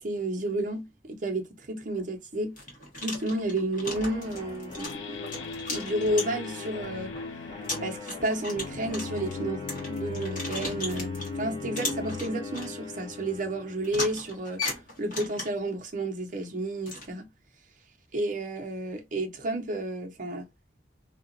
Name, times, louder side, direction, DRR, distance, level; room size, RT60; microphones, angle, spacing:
voice 1, 0.0-2.6 3.0-5.2 5.7-7.1 7.8-9.6 9.9-17.3 18.1-20.4, right 1 dB, 45° right, 0.8 m, -31 dB
sound 1, 1.9-2.0 2.6-6.7 7.2-7.3 7.6-11.4 11.8-12.7 13.8-15.7 16.9-17.1, left 2 dB, 50° left, 1.4 m, -37 dB
sound 2, 3.9-14.1, left 4 dB, 30° left, 1.2 m, -42 dB
sound 3, 4.8-14.2, left 3 dB, 85° left, 0.4 m, -39 dB
2.8 x 2.4 x 2.4 m
head